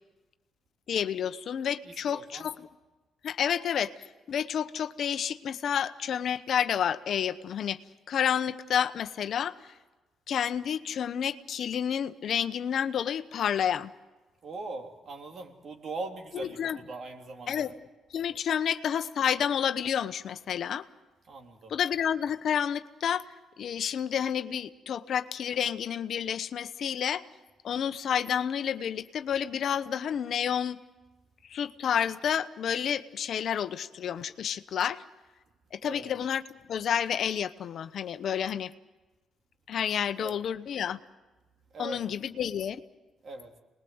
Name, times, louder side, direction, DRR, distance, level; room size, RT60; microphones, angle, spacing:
voice 1, 0.9-2.7 3.2-3.9 4.3-7.8 8.1-9.6 10.3-13.9 16.3-16.8 17.5-17.7 18.1-20.8 21.7-23.3 23.6-27.2 27.6-30.8 31.5-35.0 35.7-36.4 36.7-38.7 39.7-41.0 41.8-42.8, left 8 dB, 65° left, 11 dB, 0.9 m, -30 dB
voice 2, 1.8-2.5 14.4-17.7 21.3-21.7 35.8-36.1 40.2-40.4 41.7-42.0 43.2-43.5, right 3 dB, 50° right, 3 dB, 3.4 m, -40 dB
27.5 x 20.5 x 8.0 m, 1.2 s
cardioid pair, 90°, 0 cm